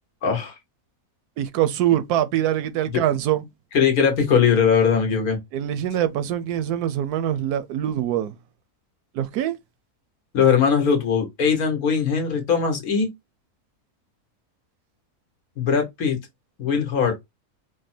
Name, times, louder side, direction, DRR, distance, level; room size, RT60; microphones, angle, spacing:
voice 1, 0.2-0.5 2.9-3.0 3.7-5.4 10.3-13.1 15.6-16.2 16.6-17.1, left 6 dB, 75° left, 1.6 m, -20 dB
voice 2, 1.4-3.4 5.5-8.4 9.1-9.6, right 11 dB, 85° right, 1.1 m, -23 dB
5.0 x 2.1 x 4.3 m
omnidirectional pair, 1.6 m